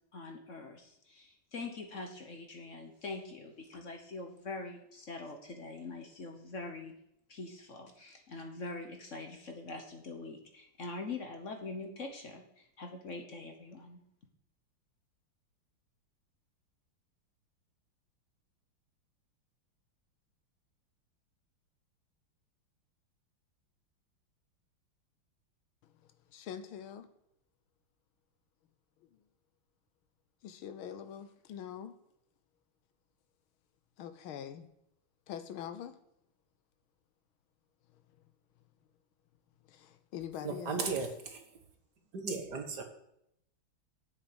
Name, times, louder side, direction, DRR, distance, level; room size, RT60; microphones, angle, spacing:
voice 1, 0.1-6.9 7.3-14.0, left 3 dB, 45° left, 4 dB, 1.1 m, -44 dB
voice 2, 26.3-27.1 30.4-31.9 34.0-34.7 35.3-36.0 39.7-40.8, left 9 dB, 80° left, 11 dB, 1.6 m, -43 dB
voice 3, 40.4-41.4 42.1-42.8, right 4 dB, 55° right, 5 dB, 1.7 m, -36 dB
7.8 x 6.5 x 7.8 m, 0.77 s
omnidirectional pair, 2.2 m